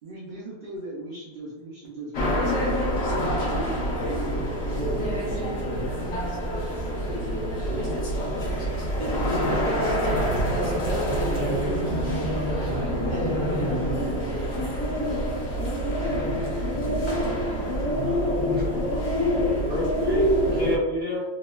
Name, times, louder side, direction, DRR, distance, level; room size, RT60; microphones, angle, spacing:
voice 1, 0.0-4.4 14.5-14.8, right 2 dB, 55° right, -6 dB, 0.6 m, -40 dB
sound 1, 2.1-20.8, equal, 90° left, 1.1 m, -26 dB
voice 2, 8.9-10.0 10.6-14.7, right 1 dB, 75° right, -3 dB, 1.0 m, -35 dB
voice 3, 18.1-18.9 19.4-21.2, left 1 dB, 10° right, -9 dB, 1.0 m, -31 dB
2.9 x 2.1 x 2.2 m, 1.1 s
omnidirectional pair, 1.2 m